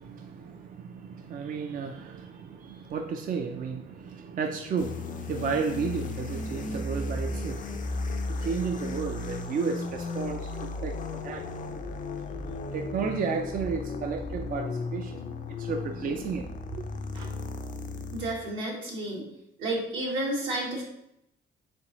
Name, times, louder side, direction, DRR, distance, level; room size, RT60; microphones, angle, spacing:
voice 1, 0.0-7.8 8.3-10.5 10.8-11.4 11.7-11.8 12.7-15.2 15.5-16.4 16.7-16.8, right 5 dB, 45° right, 5 dB, 0.4 m, -33 dB
sound 1, 4.8-18.4, left 3 dB, 40° left, 0.5 m, -35 dB
voice 2, 18.1-19.2 19.6-20.8, right 1 dB, 80° right, -3 dB, 1.4 m, -31 dB
4.2 x 3.7 x 3.0 m, 0.80 s
cardioid pair, 90°, 20 cm